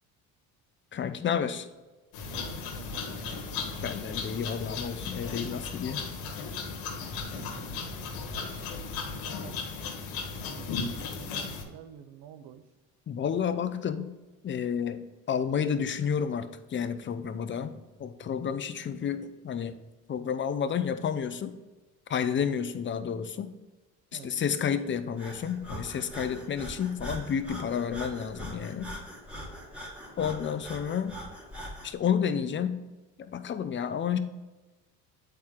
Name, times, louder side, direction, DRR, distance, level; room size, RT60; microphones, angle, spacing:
voice 1, 0.9-1.7 3.8-6.1 13.1-14.1 14.4-19.8 20.1-21.5 22.1-23.5 24.1-28.9 30.2-31.2 31.8-32.8 33.2-34.2, left 7 dB, 35° left, 10 dB, 0.7 m, -30 dB
sound 1, 2.1-11.6, left 5 dB, 80° left, 1.4 m, -36 dB
voice 2, 2.3-3.4 7.0-8.0 9.0-9.6 10.4-12.7 18.4-18.6 22.5-22.6 24.1-24.5, right 9 dB, 85° right, 11 dB, 0.7 m, -49 dB
Breathing, 25.2-31.9, equal, 5° right, 2.0 m, -42 dB
8.4 x 4.4 x 3.7 m, 1.2 s
supercardioid pair, 90°, 35 cm